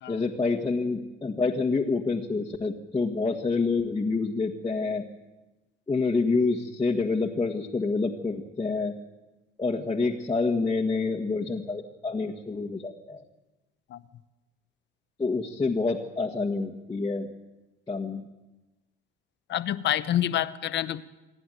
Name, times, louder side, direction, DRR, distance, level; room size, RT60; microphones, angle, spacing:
voice 1, 0.1-5.0 5.9-8.9 9.6-13.2 15.2-17.3 17.9-18.3, left 3 dB, 20° left, -2 dB, 1.6 m, -27 dB
voice 2, 19.5-21.0, left 12 dB, 60° left, 13 dB, 1.0 m, -27 dB
28.0 x 11.0 x 9.3 m, 1.1 s
cardioid pair, 100°, 21 cm